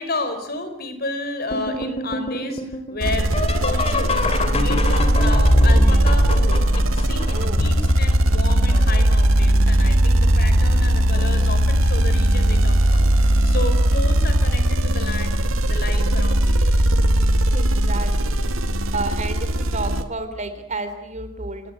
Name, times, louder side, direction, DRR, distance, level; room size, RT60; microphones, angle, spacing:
voice 1, 0.0-6.6 6.9-15.4 15.6-16.8, left 2 dB, 45° left, 9 dB, 4.5 m, -31 dB
sound 1, 1.5-9.2 9.9-10.4 10.8-11.5 12.7-12.8 13.6-13.9 16.1-16.2 18.5-18.6, left 1 dB, 30° left, 2.9 m, -25 dB
sound 2, 3.0-20.0, right 1 dB, 80° right, 2.2 m, -18 dB
voice 2, 7.3-7.6 17.5-18.6 18.9-21.7, right 3 dB, 35° right, 10 dB, 3.6 m, -31 dB
29.0 x 19.0 x 9.5 m, 0.79 s
head